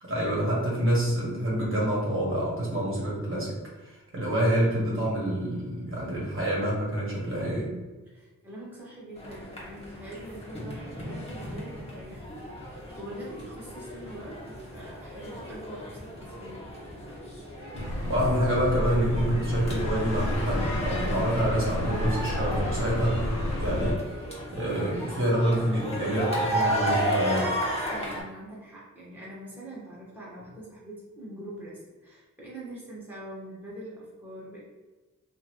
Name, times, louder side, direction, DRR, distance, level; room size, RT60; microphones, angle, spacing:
voice 1, 0.0-7.7 18.0-23.2 23.6-24.0 24.5-27.5, equal, 40° right, -6 dB, 1.2 m, -27 dB
voice 2, 8.1-17.0 27.9-34.6, right 1 dB, 5° right, -7 dB, 1.1 m, -43 dB
sound 1, 9.2-28.2, equal, 20° left, 1.1 m, -34 dB
sound 2, 17.7-23.9, left 1 dB, 50° left, 0.8 m, -30 dB
2.8 x 2.5 x 2.9 m, 1.2 s
wide cardioid pair, 70°, 33 cm